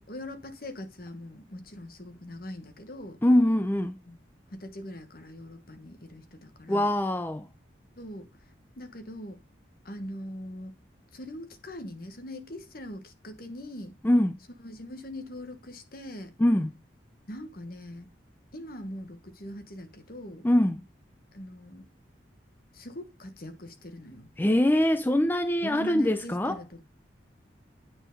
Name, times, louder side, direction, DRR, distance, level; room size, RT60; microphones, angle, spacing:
voice 1, 0.0-3.2 4.0-4.2 4.5-6.9 8.0-8.3 8.8-9.4 9.8-10.8 11.1-13.9 14.6-16.3 17.3-18.1 18.5-20.4 21.3-21.8 22.7-24.3 25.6-26.8, left 1 dB, 50° left, 1.3 m, -41 dB
voice 2, 3.2-4.0 6.7-7.5 14.0-14.3 16.4-16.7 20.4-20.8 24.4-26.6, left 1 dB, 10° left, 0.4 m, -23 dB
9.0 x 4.4 x 5.2 m
head